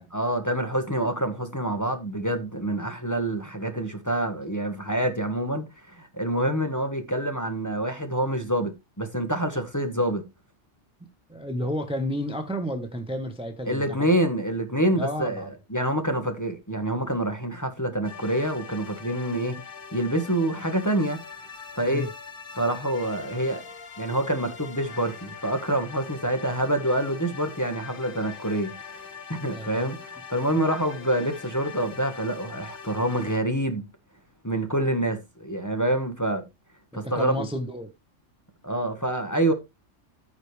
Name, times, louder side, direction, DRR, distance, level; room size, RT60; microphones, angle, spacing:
voice 1, 0.1-10.2 13.7-19.6 19.9-21.2 21.7-22.1 22.5-23.6 24.0-33.9 34.4-36.4 36.9-37.5 38.6-39.5, right 1 dB, 15° left, 1.3 m, -27 dB
voice 2, 11.3-14.1 14.9-15.5 21.8-22.1 29.5-29.8 36.9-37.9, equal, 5° right, 1.1 m, -31 dB
sound 1, 18.0-33.4, left 6 dB, 50° left, 1.2 m, -42 dB
14.0 x 5.1 x 3.3 m
omnidirectional pair, 1.3 m